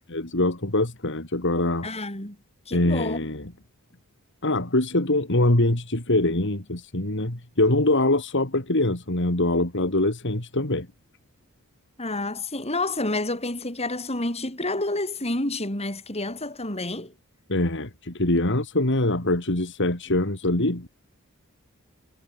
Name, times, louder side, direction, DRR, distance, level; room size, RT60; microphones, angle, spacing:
voice 1, 0.1-1.9 2.7-3.5 4.4-10.9 17.5-20.9, left 2 dB, 55° left, 3.0 m, -23 dB
voice 2, 1.8-2.4 2.7-3.2 12.0-17.1, left 2 dB, 30° left, 7.2 m, -29 dB
head